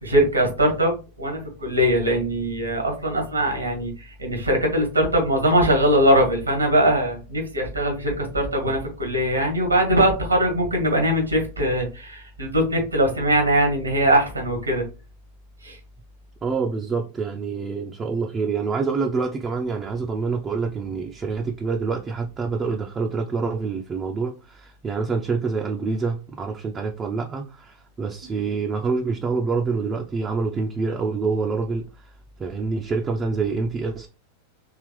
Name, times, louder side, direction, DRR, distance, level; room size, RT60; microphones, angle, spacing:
voice 1, 0.0-14.9 15.6-15.8 28.2-28.4, equal, 85° right, 1.7 m, -21 dB
voice 2, 16.4-32.1 32.4-34.1, right 4 dB, 20° right, 0.6 m, -26 dB
4.8 x 3.3 x 3.1 m
figure-of-eight pair, 90°, 0 cm